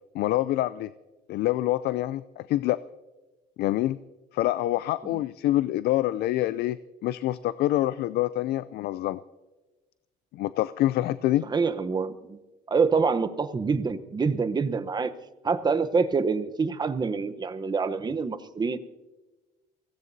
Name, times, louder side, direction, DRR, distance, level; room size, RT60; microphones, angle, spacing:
voice 1, 0.1-0.9 1.3-2.8 3.6-4.0 4.3-9.2 10.3-11.5, left 15 dB, 70° left, 16 dB, 0.4 m, -26 dB
voice 2, 11.5-12.4 12.7-15.1 15.4-18.8, right 5 dB, 25° right, 10 dB, 0.9 m, -26 dB
23.5 x 16.5 x 2.7 m, 1.2 s
cardioid pair, 110°, 17 cm